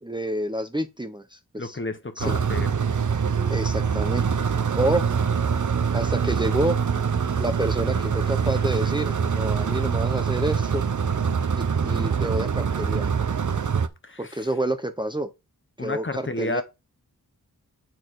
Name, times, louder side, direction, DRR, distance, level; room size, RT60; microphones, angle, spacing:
voice 1, 0.0-1.8 2.2-2.3 3.5-4.5 4.8-5.1 5.9-6.8 7.4-10.8 11.6-13.1 14.2-15.3 15.8-16.6, right 1 dB, 15° right, 0.8 m, -28 dB
voice 2, 1.6-2.7 14.0-14.5 15.8-16.6, left 2 dB, 35° left, 1.3 m, -31 dB
sound 1, 2.2-13.9, right 6 dB, 55° right, 0.9 m, -24 dB
8.2 x 4.5 x 4.8 m
wide cardioid pair, 75°, 36 cm